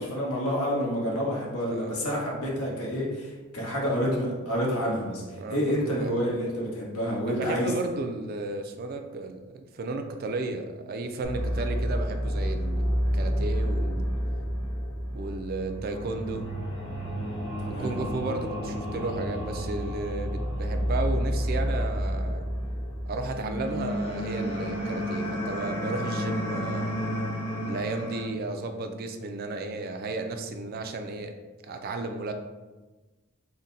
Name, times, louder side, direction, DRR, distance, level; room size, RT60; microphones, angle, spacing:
voice 1, 0.0-7.7 17.6-18.0, equal, 85° left, -4 dB, 1.2 m, -29 dB
voice 2, 1.7-2.0 2.6-2.9 5.3-6.2 7.3-14.1 15.1-16.5 17.7-22.4 23.1-27.0 27.7-31.3 31.7-32.3, right 2 dB, 45° right, 5 dB, 0.3 m, -34 dB
sound 1, 11.2-28.2, equal, 60° left, 1.1 m, -30 dB
3.8 x 2.1 x 4.0 m, 1.2 s
head